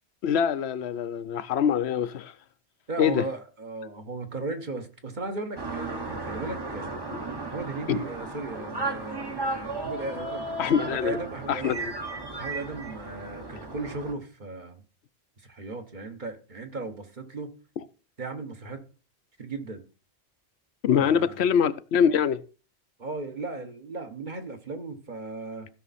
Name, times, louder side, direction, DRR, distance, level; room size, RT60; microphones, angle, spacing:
voice 1, 0.2-2.3 3.0-3.2 7.9-8.0 10.6-11.2 11.5-11.9 20.8-22.4, left 8 dB, 75° left, 0.9 m, -24 dB
voice 2, 2.9-7.0 7.5-10.7 11.0-11.8 12.4-14.8 15.4-17.5 18.2-18.8 19.4-19.8 21.0-21.5 23.0-25.7, right 3 dB, 45° right, 1.4 m, -36 dB
sound 1, 5.6-14.1, right 2 dB, 25° right, 0.9 m, -35 dB
15.5 x 5.9 x 4.2 m
omnidirectional pair, 1.1 m